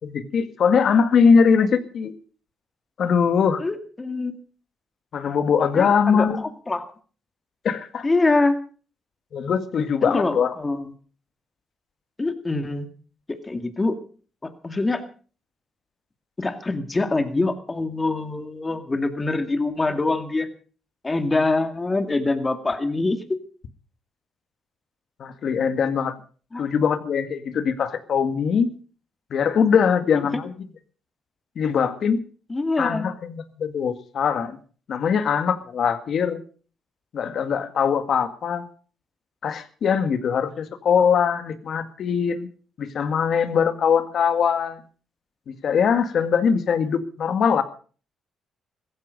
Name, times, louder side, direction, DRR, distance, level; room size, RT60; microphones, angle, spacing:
voice 1, 0.0-2.1 3.0-3.6 5.1-6.5 7.6-8.1 9.3-10.5 25.2-26.2 26.6-28.7 29.3-30.5 31.5-32.2 32.8-34.6 34.9-36.4 37.1-38.6 39.4-42.5 42.8-44.8 45.5-47.6, left 6 dB, 60° left, 10 dB, 1.8 m, -21 dB
voice 2, 3.6-4.4 5.7-6.9 8.0-8.5 10.0-10.9 12.2-12.9 13.3-14.0 14.4-15.0 16.4-20.5 21.0-23.4 26.5-26.7 30.1-30.3 32.5-33.2, left 2 dB, 20° left, 8 dB, 2.2 m, -24 dB
16.0 x 14.5 x 5.2 m, 0.41 s
cardioid pair, 90°, 0 cm